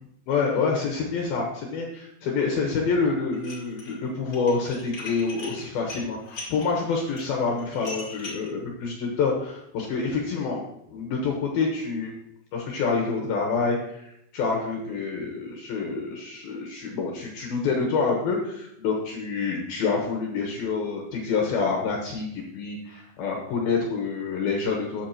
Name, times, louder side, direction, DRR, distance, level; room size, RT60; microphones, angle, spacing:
voice 1, 0.3-10.6 10.9-12.1 12.5-25.1, left 4 dB, 70° left, 0 dB, 2.5 m, -27 dB
Dishes pots and pans, 3.3-3.9 4.3-8.5, left 3 dB, 40° left, 1.8 m, -39 dB
13.0 x 8.2 x 3.0 m, 0.77 s
omnidirectional pair, 5.6 m